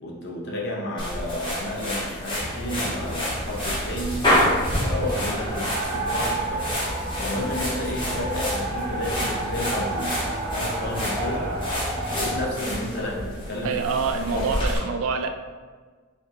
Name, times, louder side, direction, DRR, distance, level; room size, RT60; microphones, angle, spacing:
voice 1, 0.0-4.2 4.7-6.6 7.2-11.5 12.1-13.7 14.3-14.5, left 1 dB, 50° left, -2 dB, 0.7 m, -31 dB
sound 1, 1.0-14.8, equal, 25° left, 1.3 m, -29 dB
sound 2, 2.4-12.5, right 1 dB, 40° right, 0.7 m, -31 dB
voice 2, 13.6-15.3, right 5 dB, 75° right, 7 dB, 0.4 m, -26 dB
5.1 x 2.8 x 2.4 m, 1.5 s
head